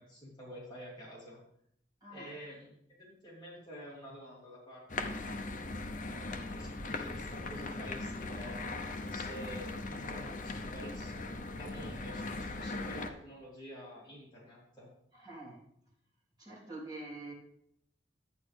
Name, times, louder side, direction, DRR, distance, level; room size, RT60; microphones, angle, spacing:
voice 1, 0.0-1.4 2.1-5.1 6.5-8.6 9.1-14.9, equal, 25° left, -6 dB, 2.9 m, -49 dB
voice 2, 2.0-2.3 9.2-9.3 15.1-15.6 16.4-17.3, right 2 dB, 20° right, -8 dB, 3.4 m, -46 dB
sound 1, 4.9-13.1, left 2 dB, 45° left, 0.7 m, -39 dB
11.0 x 9.2 x 3.4 m, 0.72 s
head